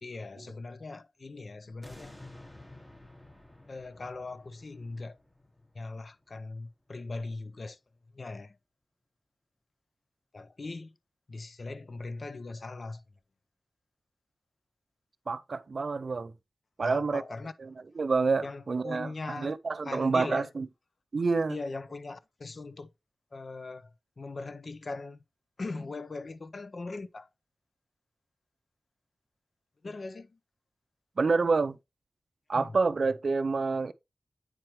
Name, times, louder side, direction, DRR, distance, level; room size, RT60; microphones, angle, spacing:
voice 1, 0.0-2.1 3.7-5.2 5.7-7.8 8.1-8.6 10.3-10.9 11.3-13.0 16.8-17.5 18.4-19.5 19.8-20.5 21.5-22.9 23.3-25.2 25.6-27.3 29.8-30.4 32.5-32.7, left 3 dB, 55° left, 0.5 m, -40 dB
sound 1, 1.8-6.9 7.4-7.5, left 1 dB, 15° left, 1.3 m, -52 dB
voice 2, 15.3-16.3 16.8-17.2 17.6-20.7 21.1-21.6 31.2-31.8 32.5-33.9, right 4 dB, 60° right, 0.4 m, -28 dB
8.8 x 4.5 x 3.0 m
wide cardioid pair, 80°, 0 cm